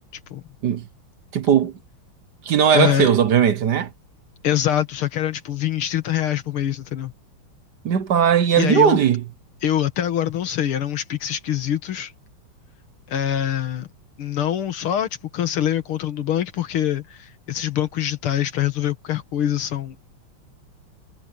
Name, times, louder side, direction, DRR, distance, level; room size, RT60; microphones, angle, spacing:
voice 1, 1.3-1.7 2.4-3.9 7.8-9.2, right 8 dB, 60° right, 1.4 m, -18 dB
voice 2, 2.7-3.1 4.4-7.1 8.5-9.0 9.6-12.1 13.1-13.9 14.2-20.0, left 11 dB, 80° left, 2.3 m, -24 dB
omnidirectional pair, 2.4 m